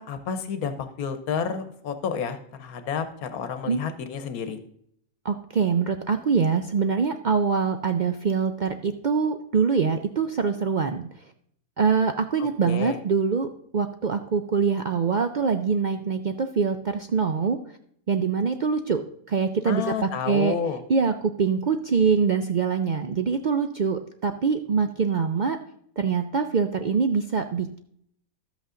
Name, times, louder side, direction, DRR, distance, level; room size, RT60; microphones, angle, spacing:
voice 1, 0.0-4.6 12.6-13.0 19.6-20.8, left 7 dB, 90° left, 10 dB, 1.3 m, -30 dB
voice 2, 5.2-11.0 11.8-13.5 13.7-17.6 18.1-20.6 20.9-25.6 26.0-27.8, right 5 dB, 75° right, 7 dB, 0.4 m, -24 dB
12.5 x 8.1 x 3.8 m, 0.67 s
omnidirectional pair, 1.5 m